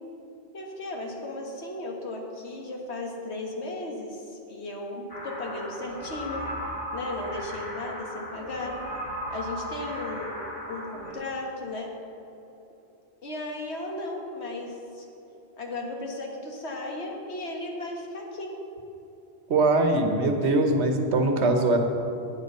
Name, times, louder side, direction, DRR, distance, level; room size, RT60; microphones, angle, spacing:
voice 1, 0.5-6.4 6.9-8.8 9.3-10.4 10.7-11.9 13.2-15.1 15.6-18.5, left 2 dB, 75° left, 0 dB, 1.8 m, -35 dB
sound 1, 5.1-11.1, equal, 20° left, 2.4 m, -36 dB
voice 2, 19.5-21.8, right 2 dB, 80° right, 5 dB, 1.3 m, -22 dB
9.5 x 9.0 x 5.5 m, 2.9 s
omnidirectional pair, 1.1 m